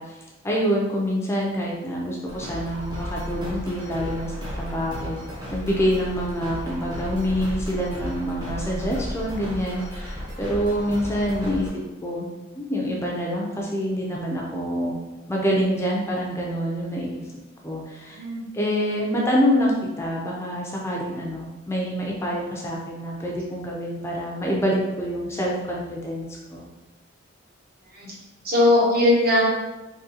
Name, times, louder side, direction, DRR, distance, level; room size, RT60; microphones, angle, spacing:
voice 1, 0.0-5.2 5.5-11.7 12.0-12.3 12.5-15.0 15.3-17.2 17.6-18.2 18.5-26.7, equal, 15° left, -3 dB, 0.4 m, -26 dB
sound 1, 2.3-11.7, equal, 20° right, 0.8 m, -34 dB
voice 2, 18.1-18.4 27.9-28.1 28.4-29.4, left 2 dB, 50° right, -4 dB, 0.9 m, -19 dB
3.7 x 2.6 x 2.7 m, 1.1 s
head